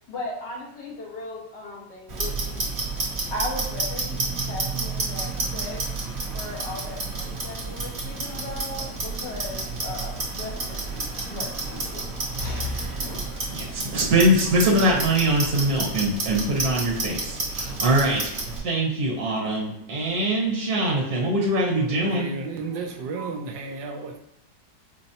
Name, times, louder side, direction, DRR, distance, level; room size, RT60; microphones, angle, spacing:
voice 1, 0.1-2.7 3.3-5.8 6.3-12.0 12.4-13.6, left 2 dB, 75° left, -3 dB, 1.7 m, -37 dB
Clock, 2.1-18.6, right 3 dB, 45° right, 1.1 m, -30 dB
voice 2, 13.5-18.3 18.6-22.3, right 1 dB, 60° right, -3 dB, 1.5 m, -23 dB
voice 3, 21.8-24.2, right 3 dB, 85° right, 2 dB, 1.3 m, -33 dB
5.2 x 2.0 x 2.8 m, 0.84 s
omnidirectional pair, 1.9 m